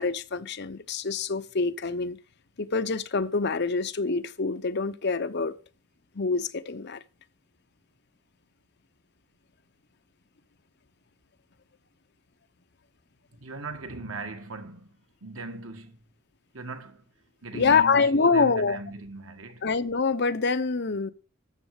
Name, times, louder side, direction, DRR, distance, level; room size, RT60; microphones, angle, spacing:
voice 1, 0.0-2.2 2.6-5.5 6.1-7.0 17.5-18.8 19.6-21.1, left 4 dB, 55° left, 0.8 m, -25 dB
voice 2, 13.3-16.0 16.5-17.0 17.4-19.7, right 3 dB, 80° right, 1.8 m, -39 dB
13.0 x 7.4 x 4.9 m
head